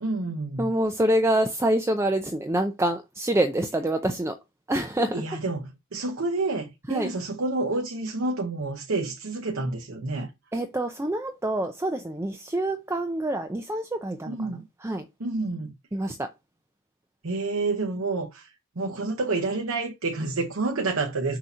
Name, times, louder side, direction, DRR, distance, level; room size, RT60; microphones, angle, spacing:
voice 1, 0.0-0.7 5.1-10.3 14.3-14.7 15.2-15.7 17.2-18.5 18.8-21.4, right 3 dB, 75° right, 0.9 m, -29 dB
voice 2, 0.6-4.3 4.7-5.2 6.9-7.1 10.5-14.3 14.8-15.0 15.9-16.3, right 1 dB, 15° right, 0.5 m, -26 dB
6.2 x 2.8 x 5.5 m
head